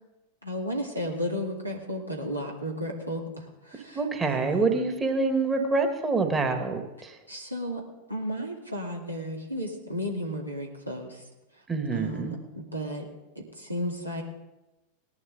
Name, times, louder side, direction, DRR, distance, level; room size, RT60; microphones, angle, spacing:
voice 1, 0.4-4.8 7.3-7.8 8.1-11.2 11.9-13.1 13.4-14.2, equal, 90° right, -1 dB, 2.1 m, -34 dB
voice 2, 3.9-6.8 11.7-12.3, right 3 dB, 15° right, 5 dB, 1.6 m, -26 dB
18.5 x 11.0 x 3.8 m, 1.0 s
figure-of-eight pair, 90°, 0 cm